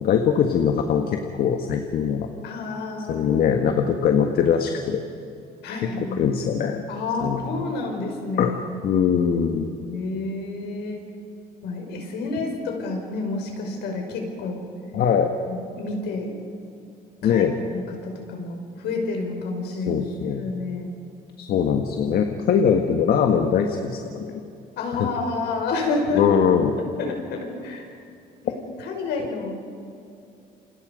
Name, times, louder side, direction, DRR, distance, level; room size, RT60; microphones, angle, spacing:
voice 1, 0.0-2.3 3.1-5.0 6.0-6.8 7.2-7.5 8.4-8.5 8.8-9.7 14.9-15.3 17.2-17.5 19.7-20.5 21.4-24.4 25.0-25.1 26.1-26.8, left 7 dB, 65° left, 4 dB, 1.7 m, -22 dB
voice 2, 2.4-3.3 3.6-3.8 5.6-6.4 6.9-8.6 9.9-11.0 11.6-14.6 15.5-16.4 17.2-17.4 17.7-20.0 20.4-20.9 24.8-26.2 26.8-27.9 28.4-29.6, left 3 dB, 80° left, 2 dB, 5.5 m, -29 dB
28.5 x 26.5 x 5.4 m, 2.6 s
cardioid pair, 110°, 17 cm